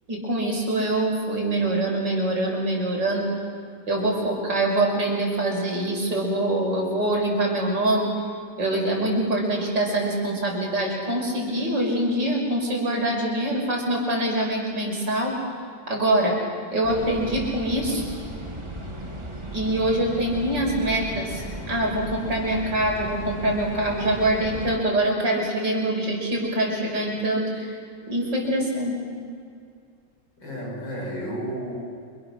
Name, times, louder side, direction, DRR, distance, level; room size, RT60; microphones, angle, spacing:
voice 1, 0.1-3.3 3.9-8.1 8.6-15.4 15.9-16.4 16.7-18.0 19.5-27.7 28.1-29.0, right 1 dB, 70° right, 0 dB, 6.3 m, -24 dB
sound 1, 16.8-24.8, equal, 15° right, 2.5 m, -36 dB
voice 2, 30.4-31.8, equal, 80° left, -2 dB, 8.0 m, -33 dB
29.0 x 27.5 x 6.5 m, 2.2 s
omnidirectional pair, 2.0 m